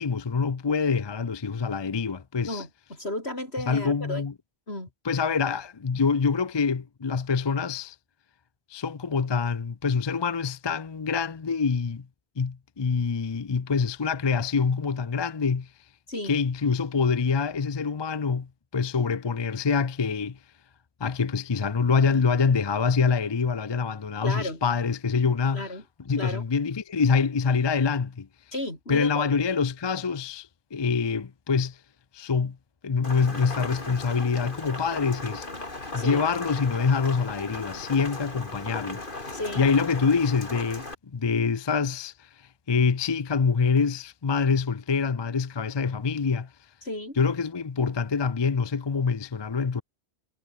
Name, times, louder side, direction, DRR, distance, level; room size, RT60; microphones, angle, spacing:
voice 1, 0.0-2.6 3.7-4.3 5.0-8.0 8.7-12.1 12.4-15.7 16.2-20.4 21.0-25.7 26.1-28.3 28.9-31.8 32.1-32.6 32.8-35.5 35.9-42.3 42.7-46.5 47.2-49.8, left 5 dB, 30° left, 0.5 m, -25 dB
voice 2, 2.5-4.2 4.7-4.9 16.1-16.4 24.2-24.6 25.5-25.8 26.2-26.4 28.5-29.4 36.0-36.2 39.3-39.6 46.8-47.2, left 1 dB, 65° left, 7.6 m, -33 dB
Rain, 33.0-40.9, left 2 dB, 50° left, 3.5 m, -37 dB
omnidirectional pair, 1.1 m